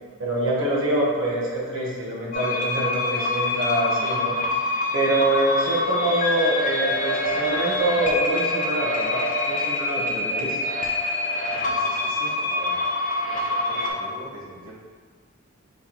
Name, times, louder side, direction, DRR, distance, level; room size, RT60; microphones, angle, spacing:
voice 1, 0.2-10.6, right 1 dB, 65° right, -5 dB, 1.0 m, -25 dB
sound 1, 2.3-13.9, left 2 dB, 40° left, 0.6 m, -25 dB
voice 2, 11.5-12.8 13.3-14.8, right 1 dB, 80° right, -12 dB, 1.3 m, -43 dB
4.3 x 3.9 x 2.9 m, 1.6 s
head